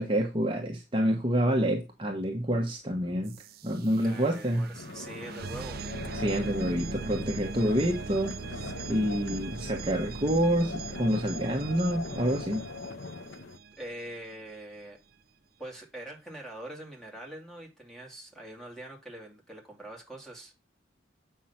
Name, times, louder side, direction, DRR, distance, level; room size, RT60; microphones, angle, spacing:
voice 1, 0.0-3.3 3.6-4.7 6.1-12.6, equal, 25° right, 1 dB, 1.3 m, -28 dB
sound 1, 3.3-14.1, right 4 dB, 50° right, 0.6 m, -40 dB
voice 2, 4.0-5.8 8.5-9.0 13.8-15.0 15.6-20.5, right 1 dB, ahead, 0 dB, 2.6 m, -44 dB
sound 2, 4.7-13.6, left 3 dB, 70° left, 0.8 m, -41 dB
8.3 x 5.7 x 5.8 m, 0.27 s
head